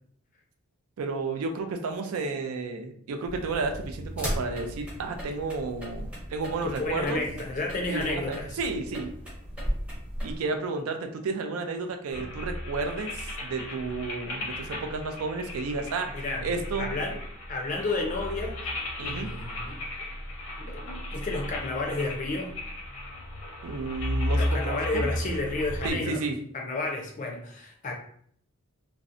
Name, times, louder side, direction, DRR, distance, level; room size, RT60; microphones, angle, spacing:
voice 1, 1.0-7.2 7.9-9.1 10.2-16.1 16.4-16.9 19.0-19.3 23.6-25.1 25.8-26.4, right 3 dB, 80° right, 5 dB, 0.4 m, -32 dB
sound 1, 3.2-10.4, equal, 5° right, 0.6 m, -36 dB
voice 2, 6.6-8.6 16.1-16.5 16.8-17.2 17.5-18.6 19.0-19.8 20.6-22.5 24.3-26.2 26.5-27.9, left 2 dB, 35° left, 1 dB, 0.4 m, -31 dB
sound 2, 12.1-25.9, left 1 dB, 80° left, 0.7 m, -34 dB
2.5 x 2.0 x 2.4 m, 0.63 s
head